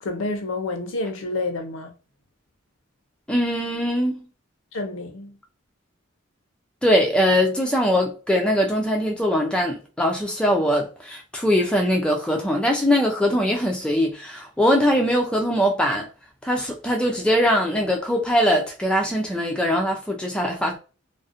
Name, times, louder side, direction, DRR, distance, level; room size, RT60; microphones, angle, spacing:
voice 1, 0.0-1.9 4.7-5.4, left 2 dB, 75° left, 0.5 m, -29 dB
voice 2, 3.3-4.3 6.8-16.1 16.4-20.8, equal, 5° left, 0.3 m, -21 dB
2.4 x 2.0 x 2.4 m
head